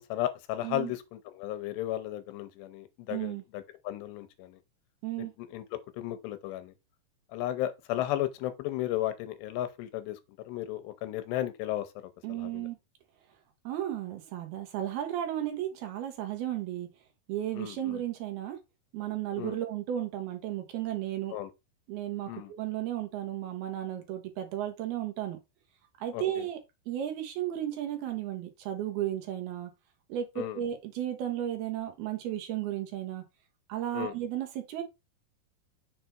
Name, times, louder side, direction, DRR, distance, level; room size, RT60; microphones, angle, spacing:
voice 1, 0.0-4.6 5.2-5.6 6.0-6.7 7.3-10.2 10.5-11.9 12.3-12.7 17.5-18.0 19.4-19.6 21.3-21.5 22.3-22.5 26.1-26.4 30.4-30.6 33.9-34.1, left 13 dB, 80° left, 2.8 m, -34 dB
voice 2, 3.1-3.4 5.0-5.3 12.2-12.8 13.6-16.9 17.3-18.6 18.9-21.4 21.9-25.4 26.0-26.6 26.9-29.7 30.1-33.2 33.7-34.8, right 12 dB, 70° right, 2.9 m, -34 dB
6.8 x 3.9 x 4.5 m
omnidirectional pair, 5.0 m